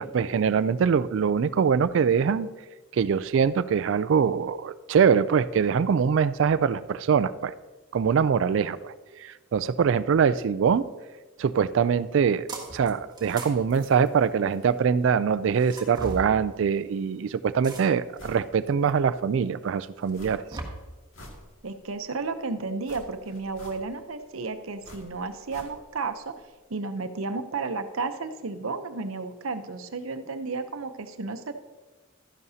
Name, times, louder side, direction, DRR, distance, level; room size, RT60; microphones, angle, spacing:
voice 1, 0.0-2.5 2.9-7.5 7.9-8.9 9.2-10.9 11.4-20.4, right 6 dB, 60° right, 16 dB, 0.3 m, -23 dB
sound 1, 12.5-12.9 13.2-14.7 15.6-16.3 17.6-18.2 18.9-19.0 20.1-20.6, right 2 dB, 20° right, 1.3 m, -38 dB
sound 2, 18.2-18.5 18.9-19.0 20.1-20.6 20.9-21.9 22.8-24.1 24.8-26.1 26.3-26.4, left 1 dB, 70° left, 2.2 m, -47 dB
voice 2, 21.6-26.3 26.7-31.6, right 4 dB, 80° right, 9 dB, 0.7 m, -33 dB
12.5 x 10.5 x 2.8 m, 1.2 s
head